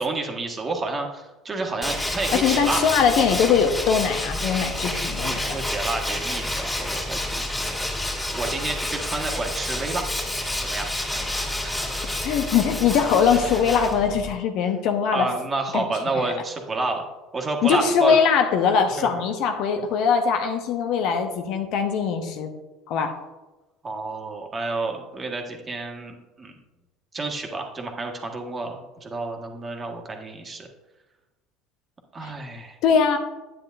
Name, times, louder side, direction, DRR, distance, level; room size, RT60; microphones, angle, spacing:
voice 1, 0.0-2.8 5.3-7.9 8.3-10.0 10.6-10.9 11.6-11.7 13.5-13.6 15.1-17.0 17.3-18.2 19.0-19.1 23.8-26.6 27.1-30.7 32.1-32.8, right 3 dB, 25° right, 2 dB, 1.7 m, -30 dB
Tools, 1.8-14.3, left 1 dB, 10° left, 2.7 m, -29 dB
voice 2, 2.3-5.6 12.2-15.3 15.7-15.8 16.2-16.3 17.6-22.5 22.9-23.1 32.2-32.3 32.8-33.2, left 6 dB, 55° left, 5 dB, 1.0 m, -21 dB
9.6 x 9.4 x 2.6 m, 1.1 s
figure-of-eight pair, 65°, 0 cm